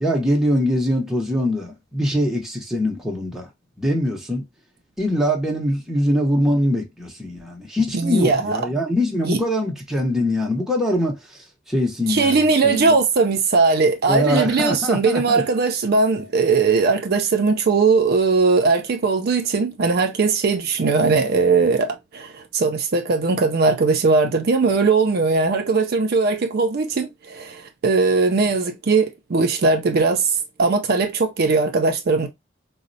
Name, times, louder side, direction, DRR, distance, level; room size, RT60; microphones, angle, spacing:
voice 1, 0.0-3.5 3.8-4.4 5.0-11.2 11.7-12.9 14.1-15.4, equal, ahead, 0.8 m, -22 dB
voice 2, 7.9-8.6 9.2-9.4 12.1-32.3, right 4 dB, 55° right, 0.4 m, -19 dB
4.0 x 2.0 x 2.5 m
head